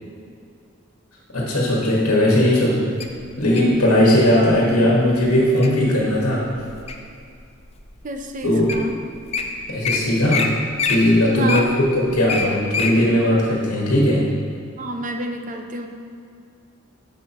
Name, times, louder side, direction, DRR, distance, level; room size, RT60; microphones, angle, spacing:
voice 1, 1.3-2.8 3.4-6.5 8.4-8.9 9.7-11.7 11.9-14.3, left 1 dB, 85° left, -4 dB, 1.5 m, -18 dB
Wild animals, 3.0-3.7 4.4-4.7 5.2-5.7 6.2-7.1 7.7-7.8 8.4-8.5 8.7-8.9 9.1-9.4 9.8-10.0 10.3-10.5 10.8-12.9 13.4-13.5, left 5 dB, 30° left, 0.5 m, -24 dB
voice 2, 8.0-8.9 11.4-11.8 14.8-15.9, right 1 dB, 35° right, 4 dB, 0.6 m, -28 dB
11.0 x 6.2 x 3.0 m, 2.4 s
head